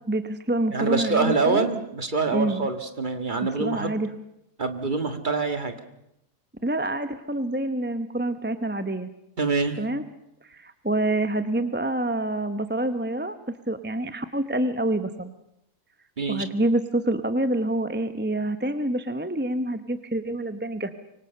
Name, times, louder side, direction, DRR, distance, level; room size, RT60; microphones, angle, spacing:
voice 1, 0.1-1.7 2.3-2.7 3.4-4.1 6.6-9.1 9.8-10.0 10.4-15.3 16.3-20.9, right 1 dB, 10° right, 10 dB, 0.7 m, -27 dB
voice 2, 0.7-3.9 4.6-5.7 9.4-9.8 16.2-16.4, right 4 dB, 30° right, 7 dB, 1.9 m, -25 dB
25.5 x 24.5 x 6.7 m, 0.82 s
omnidirectional pair, 1.7 m